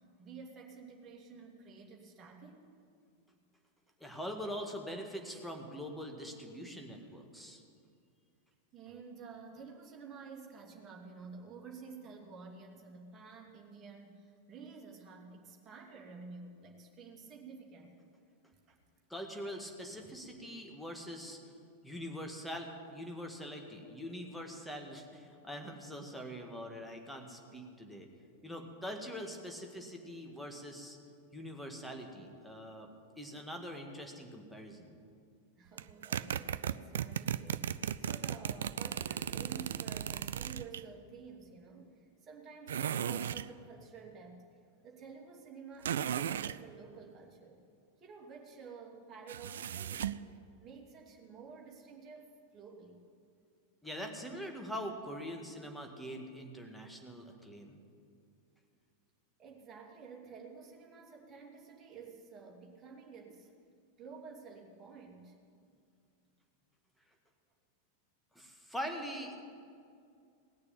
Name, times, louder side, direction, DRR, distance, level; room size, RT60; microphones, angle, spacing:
voice 1, 0.2-2.6 8.7-18.1 18.7-18.8 20.0-20.2 35.6-44.4 44.8-47.6 48.0-50.2 50.6-53.0 59.4-63.5 64.0-65.4, right 5 dB, 25° right, -1 dB, 2.6 m, -51 dB
voice 2, 4.0-7.6 19.1-21.4 21.8-28.1 28.4-31.0 31.3-32.9 33.2-35.0 53.8-57.8 68.3-69.4, equal, ahead, 2 dB, 1.8 m, -43 dB
sound 1, 35.8-40.8 42.7-43.5 45.8-46.6 49.3-50.2, right 9 dB, 60° right, 0.3 m, -36 dB
18.5 x 6.7 x 8.9 m, 2.4 s
figure-of-eight pair, 90°, 0 cm